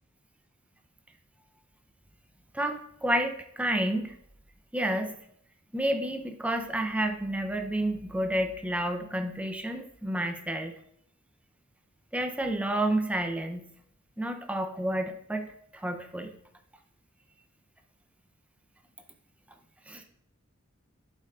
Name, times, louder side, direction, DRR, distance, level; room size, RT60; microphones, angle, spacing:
voice 1, 2.5-4.1 4.7-5.1 5.7-10.7 12.1-13.7 14.2-16.3 19.9-20.0, right 1 dB, 5° right, 6 dB, 0.6 m, -30 dB
11.5 x 6.8 x 2.4 m, 0.73 s
head